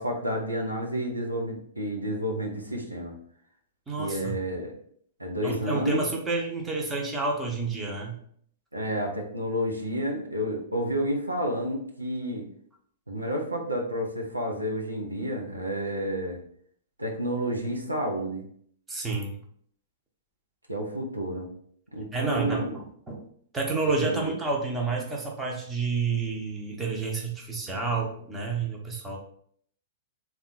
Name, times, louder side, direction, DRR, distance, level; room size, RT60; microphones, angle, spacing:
voice 1, 0.0-3.1 4.0-4.7 5.2-6.0 8.7-12.5 13.1-16.4 17.0-18.4 20.7-21.5 21.9-22.7 24.0-24.3, equal, 85° right, 0 dB, 0.8 m, -30 dB
voice 2, 3.9-4.4 5.4-8.2 18.9-19.3 22.1-23.2 23.5-29.2, right 3 dB, 10° right, -1 dB, 0.8 m, -29 dB
3.7 x 2.3 x 4.2 m, 0.62 s
figure-of-eight pair, 105°, 0 cm